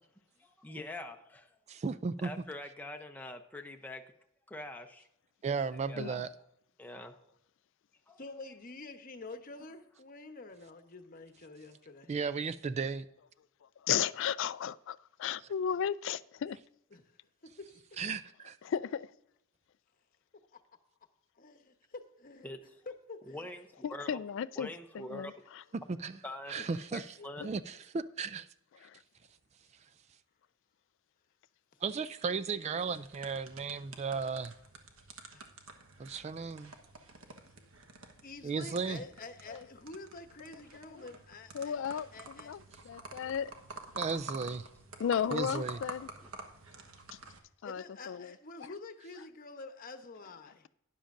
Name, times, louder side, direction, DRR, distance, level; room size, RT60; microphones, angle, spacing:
voice 1, 0.4-1.6 2.2-4.1 4.5-5.1 5.9-6.2 6.8-7.2 8.1-8.2 22.4-22.6 23.3-24.2 24.6-25.3 26.2-26.5 26.9-27.5 43.0-43.3 45.7-45.8 46.2-46.6, left 1 dB, 10° left, 0.7 m, -45 dB
voice 2, 1.7-2.3 5.4-6.3 12.1-13.1 18.0-18.6 25.7-26.2 26.5-27.1 27.4-28.5 31.8-34.5 36.0-36.7 38.4-39.0 44.0-44.7 45.3-45.8, right 5 dB, 30° right, 0.3 m, -35 dB
voice 3, 8.2-12.1 16.9-17.0 17.4-18.0 20.5-20.6 21.4-22.5 22.9-23.5 26.6-26.8 27.2-27.3 35.3-35.5 38.2-42.5 44.4-44.5 47.6-50.7, left 3 dB, 45° left, 0.9 m, -48 dB
voice 4, 13.8-16.6 18.6-19.1 23.8-24.7 24.9-25.3 28.9-29.0 39.5-39.6 41.5-42.6 42.8-43.5 45.0-46.1 47.6-48.3, left 8 dB, 60° left, 0.3 m, -34 dB
sound 1, 32.8-47.4, right 3 dB, 80° right, 1.2 m, -49 dB
12.5 x 10.0 x 2.6 m
head